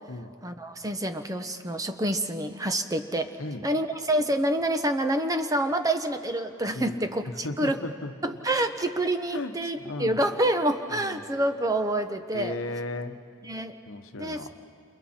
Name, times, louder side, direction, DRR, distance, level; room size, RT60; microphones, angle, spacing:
voice 1, 0.4-3.3 3.6-7.8 8.2-12.5 13.4-13.7 14.2-14.5, right 1 dB, 15° right, 7 dB, 0.9 m, -27 dB
voice 2, 6.7-7.1 7.4-8.1 9.3-9.5 9.8-10.2 10.9-11.2 12.3-13.2 13.9-14.5, left 2 dB, 80° left, 8 dB, 1.1 m, -35 dB
29.0 x 28.5 x 4.4 m, 2.5 s
head